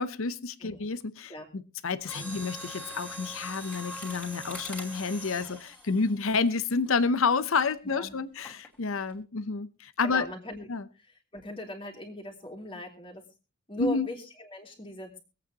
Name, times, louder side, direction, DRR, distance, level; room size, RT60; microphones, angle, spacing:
voice 1, 0.0-10.3 10.7-10.8 13.8-14.1, left 4 dB, 65° left, 14 dB, 0.7 m, -29 dB
Mechanisms, 2.0-7.0 7.6-7.8 8.4-8.8 9.1-9.2, left 1 dB, 5° left, 2.8 m, -42 dB
voice 2, 10.0-10.7 11.3-13.2 13.7-15.2, left 1 dB, 25° left, 2 dB, 2.6 m, -39 dB
24.0 x 8.5 x 2.9 m, 0.32 s
head